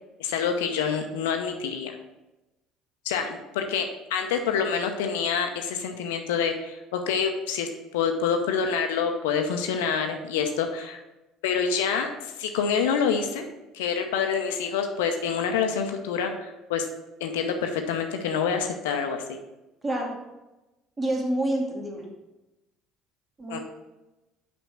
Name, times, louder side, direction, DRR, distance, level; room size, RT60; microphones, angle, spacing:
voice 1, 0.2-2.0 3.0-11.0 11.4-13.5 13.7-16.8 17.2-19.2 23.5-23.6, left 6 dB, 70° left, 5 dB, 0.8 m, -27 dB
voice 2, 19.8-20.1 21.0-22.1 23.4-23.6, right 1 dB, 25° right, -1 dB, 2.5 m, -27 dB
6.0 x 5.3 x 6.0 m, 0.99 s
figure-of-eight pair, 60°, 0 cm